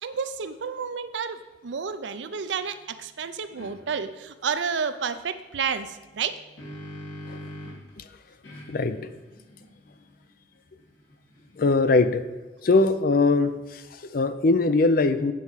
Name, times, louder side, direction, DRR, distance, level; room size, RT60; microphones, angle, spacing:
voice 1, 0.0-6.4, right 6 dB, 75° right, 11 dB, 0.5 m, -31 dB
sound 1, 3.6-3.7 6.1-7.9 8.4-11.8, equal, 80° left, 2.3 m, -43 dB
voice 2, 8.7-9.1 11.6-12.3 12.6-15.3, left 3 dB, 50° left, 11 dB, 0.4 m, -22 dB
8.4 x 4.7 x 5.6 m, 1.2 s
head